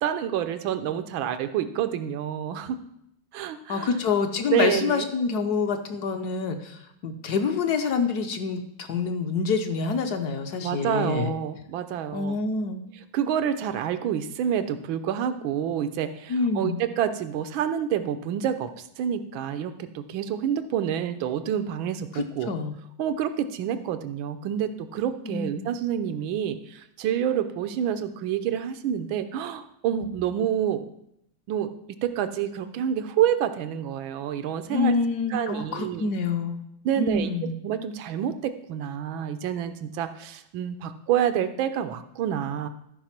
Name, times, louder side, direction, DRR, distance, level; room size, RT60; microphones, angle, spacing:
voice 1, 0.0-2.8 3.3-3.9 4.5-5.1 10.6-12.4 13.1-22.5 23.0-30.9 31.5-31.7 32.0-34.9 35.3-36.0 36.8-37.3 37.6-42.7, right 9 dB, 90° right, 10 dB, 1.5 m, -28 dB
voice 2, 3.7-11.3 12.1-12.8 16.3-16.8 22.1-22.7 25.3-25.6 34.7-36.6 37.0-37.5, left 5 dB, 60° left, 6 dB, 1.2 m, -27 dB
13.0 x 4.9 x 5.8 m, 0.78 s
omnidirectional pair, 2.1 m